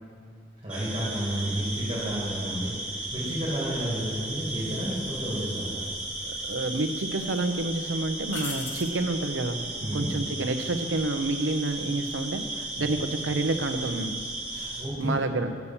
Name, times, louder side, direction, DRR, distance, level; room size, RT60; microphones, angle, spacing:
voice 1, 0.6-5.9 9.8-10.1 14.5-15.1, equal, 25° right, -7 dB, 2.4 m, -31 dB
sound 1, 0.7-14.8, right 2 dB, 5° right, 1.6 m, -35 dB
sound 2, 6.2-6.9 7.3-7.4 8.3-9.0 12.1-12.5, left 5 dB, 75° left, 1.0 m, -39 dB
voice 2, 6.2-9.6 9.9-14.1 15.0-15.5, right 2 dB, 75° right, 7 dB, 0.7 m, -29 dB
8.2 x 7.0 x 7.1 m, 2.2 s
head